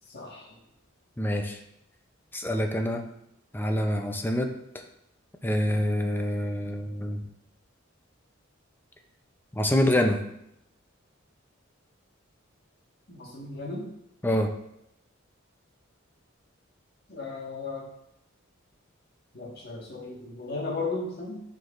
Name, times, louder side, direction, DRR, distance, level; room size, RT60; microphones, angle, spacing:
voice 1, 0.1-0.6 13.1-13.9 17.1-17.8 19.3-21.4, left 3 dB, 50° left, -2 dB, 1.6 m, -35 dB
voice 2, 1.2-1.6 2.3-3.0 3.5-4.5 5.4-7.2 9.5-10.2 14.2-14.5, left 1 dB, 10° left, 4 dB, 0.5 m, -26 dB
9.4 x 4.6 x 2.5 m, 0.79 s
head